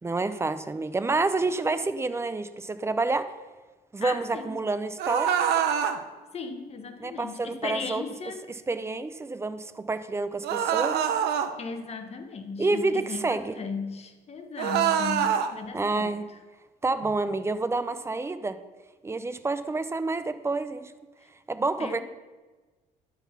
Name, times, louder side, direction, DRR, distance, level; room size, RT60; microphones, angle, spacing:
voice 1, 0.0-3.3 3.9-5.4 7.0-8.0 8.5-11.1 12.6-13.6 15.7-16.2 16.8-18.6 19.0-20.9 21.5-22.0, right 3 dB, 15° right, 12 dB, 0.5 m, -28 dB
voice 2, 4.0-4.5 6.3-8.4 11.6-16.1 21.2-21.3 21.8-22.0, left 4 dB, 40° left, 7 dB, 1.0 m, -36 dB
sound 1, 5.0-6.0 10.4-11.5 14.6-15.5, right 8 dB, 75° right, 0.7 m, -25 dB
11.5 x 4.0 x 5.8 m, 1.3 s
cardioid pair, 110°, 17 cm